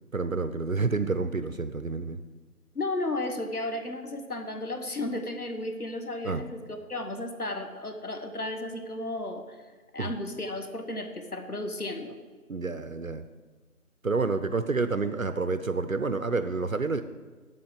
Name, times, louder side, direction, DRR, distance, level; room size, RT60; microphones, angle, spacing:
voice 1, 0.1-2.2 6.2-6.4 10.0-10.1 12.5-13.2 14.0-17.0, right 4 dB, 65° right, 11 dB, 0.6 m, -29 dB
voice 2, 2.7-9.6 9.9-12.2, left 2 dB, 75° left, 6 dB, 1.4 m, -34 dB
8.9 x 7.6 x 7.5 m, 1.4 s
figure-of-eight pair, 180°, 45 cm